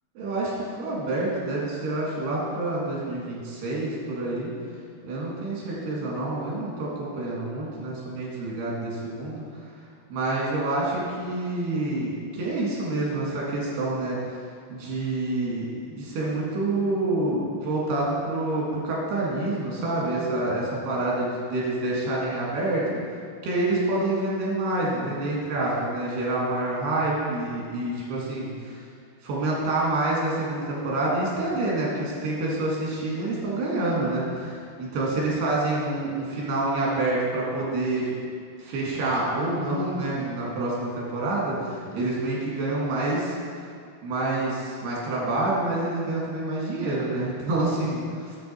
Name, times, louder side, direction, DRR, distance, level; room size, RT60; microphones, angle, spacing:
voice 1, 0.2-4.5 5.0-9.4 10.1-14.2 14.7-23.0 23.4-28.8 29.2-38.1 38.6-43.4 44.0-48.4, right 2 dB, 90° right, -5 dB, 4.2 m, -27 dB
9.3 x 7.6 x 4.6 m, 2.2 s
omnidirectional pair, 4.6 m